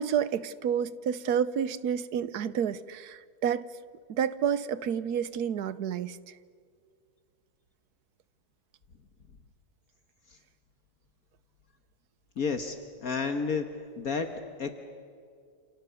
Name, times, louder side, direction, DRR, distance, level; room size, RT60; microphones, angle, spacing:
voice 1, 0.0-3.7 4.1-6.2, right 8 dB, 70° right, 15 dB, 1.3 m, -29 dB
voice 2, 12.4-12.8 13.0-13.6 14.0-14.3 14.6-14.7, left 5 dB, 60° left, 6 dB, 1.8 m, -30 dB
29.5 x 28.5 x 7.1 m, 2.2 s
omnidirectional pair, 1.8 m